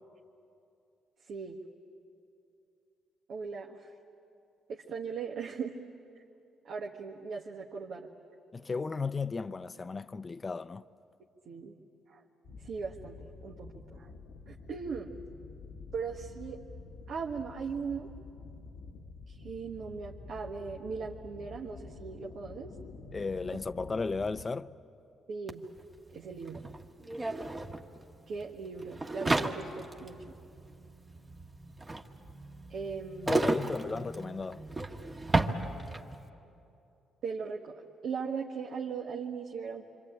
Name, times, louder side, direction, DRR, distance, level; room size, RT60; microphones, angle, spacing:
voice 1, 1.3-1.6 3.3-3.9 4.7-5.8 6.6-8.1 11.4-11.7 12.1-12.2 12.6-14.1 14.5-15.1 15.9-16.6 17.1-18.1 19.3-22.7 25.3-25.7 26.1-26.6 28.3-30.3 32.7-33.7 37.2-39.9, right 5 dB, 65° right, 1.5 m, -39 dB
voice 2, 8.5-10.8 23.1-24.8 33.3-34.6, left 4 dB, 30° left, 0.6 m, -35 dB
sound 1, 12.4-24.5, left 3 dB, 80° left, 1.3 m, -48 dB
sound 2, 25.5-25.6 25.8-36.2, right 2 dB, 25° right, 1.5 m, -34 dB
26.0 x 25.5 x 8.8 m
cardioid pair, 90°, 0 cm